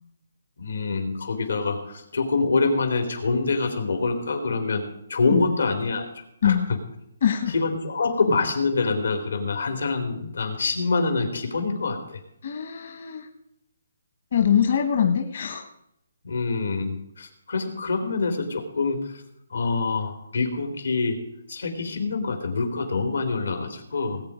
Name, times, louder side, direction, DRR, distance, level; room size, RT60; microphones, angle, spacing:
voice 1, 0.6-4.8 5.1-6.1 6.4-6.6 7.5-12.2 16.2-19.2 19.5-21.2 21.5-24.2, left 3 dB, 85° left, 6 dB, 3.3 m, -25 dB
voice 2, 7.2-7.5 12.4-13.3 14.3-15.7, left 8 dB, 50° left, 5 dB, 1.2 m, -23 dB
19.0 x 8.7 x 5.0 m, 0.79 s
hypercardioid pair, 170°, 0 cm